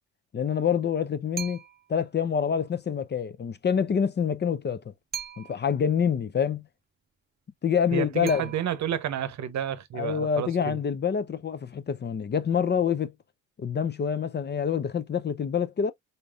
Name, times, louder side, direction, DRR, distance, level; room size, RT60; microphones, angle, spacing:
voice 1, 0.3-1.6 1.9-4.9 5.4-6.6 7.6-8.4 9.9-13.1 13.6-15.9, left 7 dB, 35° left, 0.6 m, -26 dB
sound 1, 1.4-2.0 5.1-5.8 8.3-9.1, right 8 dB, 30° right, 0.7 m, -39 dB
voice 2, 7.9-10.8, right 9 dB, 60° right, 0.8 m, -30 dB
4.2 x 3.3 x 2.4 m
cardioid pair, 85°, 32 cm